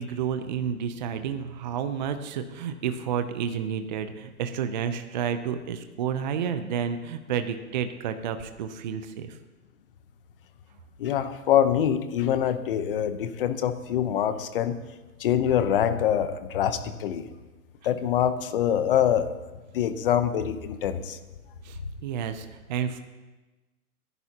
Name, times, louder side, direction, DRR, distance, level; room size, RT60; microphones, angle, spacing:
voice 1, 0.0-9.4 21.6-23.0, right 8 dB, 30° right, 9 dB, 0.6 m, -30 dB
voice 2, 11.0-14.8 15.2-17.3 17.8-19.3 19.7-21.2, left 9 dB, 40° left, 11 dB, 0.9 m, -25 dB
25.5 x 11.0 x 2.9 m, 1.2 s
hypercardioid pair, 155°, 43 cm